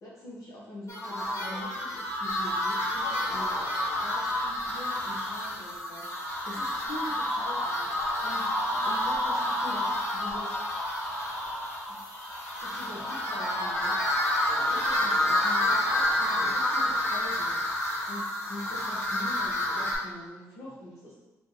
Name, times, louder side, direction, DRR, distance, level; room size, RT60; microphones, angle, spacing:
voice 1, 0.0-3.7 4.0-10.8 11.9-12.3 12.6-14.3 14.7-21.1, left 1 dB, 65° left, -9 dB, 1.2 m, -44 dB
sound 1, 0.9-20.0, left 1 dB, 40° left, 1.3 m, -29 dB
3.3 x 2.7 x 4.1 m, 1.1 s
cardioid pair, 70°, 6 cm